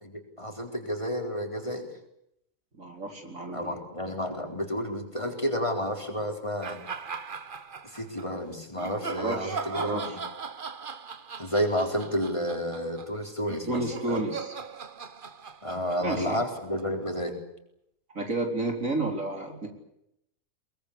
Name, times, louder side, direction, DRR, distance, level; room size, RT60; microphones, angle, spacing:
voice 1, 0.0-1.9 3.5-6.8 7.8-10.2 11.4-14.3 15.6-17.3, equal, 20° left, 3 dB, 4.2 m, -31 dB
voice 2, 2.8-3.7 9.0-10.2 13.7-14.5 16.0-16.4 18.1-19.7, right 2 dB, 65° right, 3 dB, 4.7 m, -31 dB
sound 1, 6.6-8.3 8.8-17.0, right 5 dB, 40° right, 1.1 m, -39 dB
23.0 x 22.5 x 8.5 m, 0.78 s
omnidirectional pair, 1.5 m